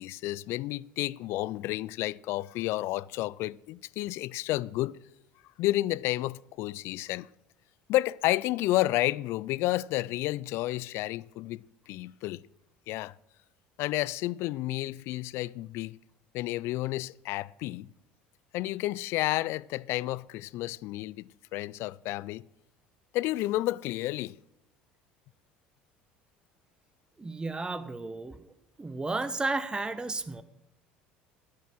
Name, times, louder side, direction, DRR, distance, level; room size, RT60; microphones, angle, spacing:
voice 1, 0.0-5.0 5.6-7.3 7.9-12.4 12.9-13.1 13.8-16.0 16.3-17.9 18.5-22.4 23.1-24.4, left 17 dB, 60° left, 0.4 m, -31 dB
voice 2, 27.2-28.5 28.8-30.4, right 3 dB, 15° right, 1.1 m, -33 dB
13.0 x 10.5 x 6.1 m
hypercardioid pair, 70°, 5 cm